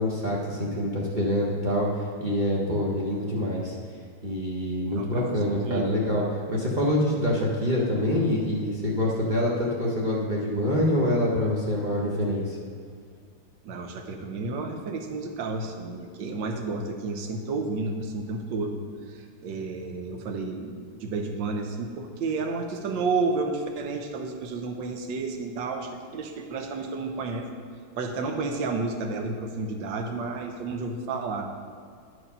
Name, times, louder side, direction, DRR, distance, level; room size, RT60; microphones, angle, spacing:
voice 1, 0.0-3.7 4.2-12.6, left 1 dB, 40° right, -5 dB, 0.7 m, -26 dB
voice 2, 4.9-5.9 13.6-27.5 28.0-31.5, right 3 dB, 70° right, 4 dB, 1.4 m, -31 dB
10.0 x 4.8 x 5.4 m, 2.2 s
omnidirectional pair, 2.2 m